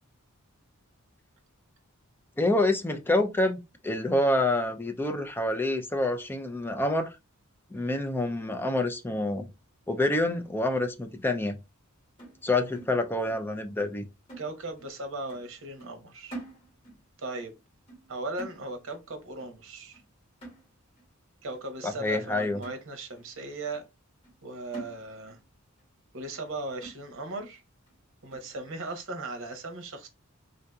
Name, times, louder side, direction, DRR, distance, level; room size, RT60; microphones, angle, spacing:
voice 1, 2.4-7.1 7.7-9.5 9.9-11.6 12.4-14.0 21.8-22.6, left 1 dB, 10° left, 0.4 m, -27 dB
sound 1, 12.2-13.5 13.8-14.0 14.3-15.0 15.3-15.5 15.8-17.1 17.4-17.6 17.9-18.1 18.4-19.1 19.4-19.6 19.9-20.1 20.4-21.0 21.5-21.6 22.1-22.2 22.6-23.3 23.7-23.8 24.2-24.4 24.7-25.5 25.8-25.9 26.3-26.4 26.8-27.4 27.9-28.0 28.3-28.5, right 2 dB, 25° left, 2.0 m, -47 dB
voice 2, 14.4-16.4 17.2-17.5 18.1-20.0 21.4-23.8 24.4-25.4 26.1-27.6 28.2-30.1, right 2 dB, 65° right, 0.9 m, -37 dB
3.7 x 2.7 x 2.3 m
head